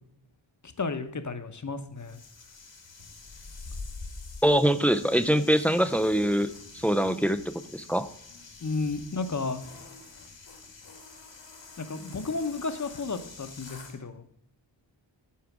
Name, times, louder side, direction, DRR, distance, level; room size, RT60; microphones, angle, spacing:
voice 1, 0.6-2.2 8.6-9.6 11.8-14.3, left 4 dB, 40° left, 9 dB, 0.9 m, -33 dB
sound 1, 2.0-14.0, left 3 dB, 65° left, 1.7 m, -46 dB
voice 2, 4.4-7.4 7.7-8.1, equal, 5° left, 12 dB, 0.4 m, -23 dB
8.6 x 4.8 x 6.0 m, 0.71 s
wide cardioid pair, 65°, 47 cm